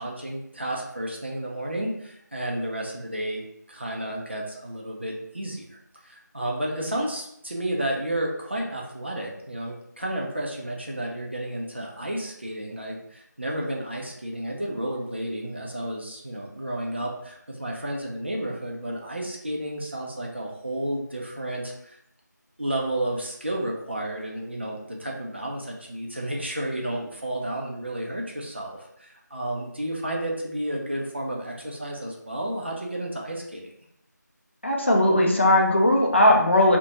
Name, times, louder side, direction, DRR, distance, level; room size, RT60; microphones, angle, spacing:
voice 1, 0.0-22.0 22.6-33.7, right 1 dB, 35° right, -1 dB, 0.4 m, -32 dB
voice 2, 34.6-36.8, left 1 dB, 40° left, -1 dB, 0.4 m, -18 dB
2.4 x 2.1 x 2.9 m, 0.75 s
figure-of-eight pair, 175°, 10 cm